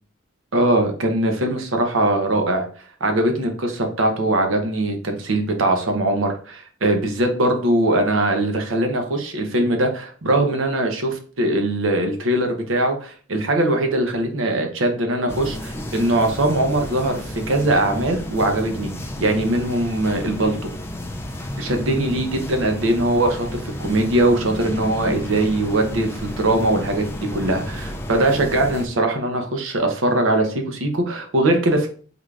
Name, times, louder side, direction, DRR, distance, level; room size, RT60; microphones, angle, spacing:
voice 1, 0.5-2.7 3.0-18.9 19.2-20.6 21.6-27.1 27.3-31.9, right 1 dB, 75° right, 5 dB, 0.7 m, -21 dB
sound 1, 15.3-28.9, left 1 dB, 10° left, 0.3 m, -32 dB
3.7 x 2.4 x 3.3 m, 0.43 s
head